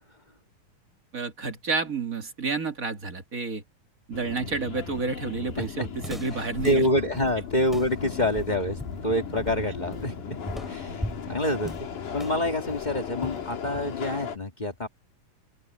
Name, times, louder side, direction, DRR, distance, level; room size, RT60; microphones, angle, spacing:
voice 1, 1.1-3.6 4.1-6.9, right 4 dB, 30° right, 1.8 m, -30 dB
Subway metro underground, 4.1-14.4, left 6 dB, 70° left, 4.3 m, -37 dB
Walk footsteps, 4.9-14.2, equal, ahead, 4.7 m, -41 dB
voice 2, 5.6-5.9 6.1-10.1 10.7-11.7 12.1-14.9, left 1 dB, 25° left, 1.1 m, -27 dB
open air
omnidirectional pair, 3.7 m